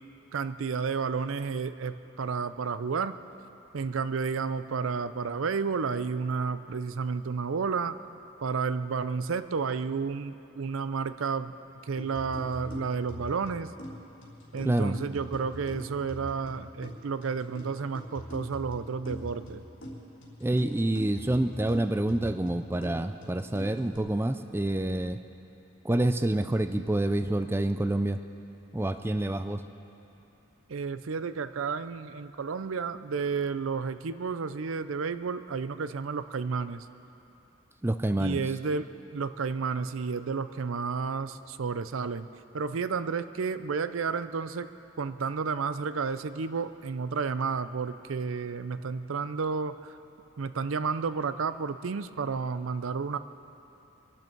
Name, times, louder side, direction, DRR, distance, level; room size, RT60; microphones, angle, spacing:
voice 1, 0.3-3.2 3.7-8.0 8.4-11.5 11.8-13.7 14.5-19.6 30.7-36.9 38.2-42.3 42.5-44.7 45.0-49.8 50.4-53.2, right 5 dB, 90° right, 13 dB, 0.5 m, -31 dB
sound 1, 12.0-24.0, equal, 65° left, 3.4 m, -43 dB
voice 2, 14.6-15.0 20.4-25.2 25.8-28.2 28.7-29.6 37.8-38.4, right 1 dB, 10° right, 9 dB, 0.4 m, -27 dB
23.5 x 12.0 x 4.6 m, 2.9 s
head